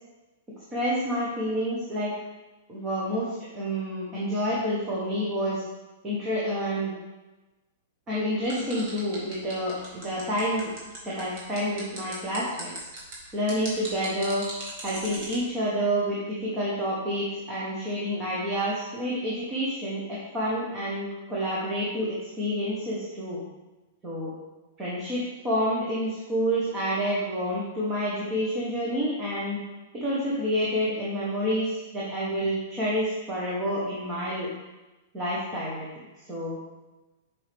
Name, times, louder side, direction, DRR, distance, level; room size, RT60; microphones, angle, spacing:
voice 1, 0.7-2.1 2.7-5.6 6.0-6.9 8.1-10.7 11.0-12.7 13.3-14.5 14.8-23.4 24.0-24.3 24.8-29.6 29.9-34.5 35.1-36.6, equal, 15° right, -7 dB, 1.0 m, -28 dB
sound 1, 8.4-15.4, right 2 dB, 30° right, 1.6 m, -39 dB
7.0 x 4.7 x 3.4 m, 1.1 s
supercardioid pair, 180°, 0 cm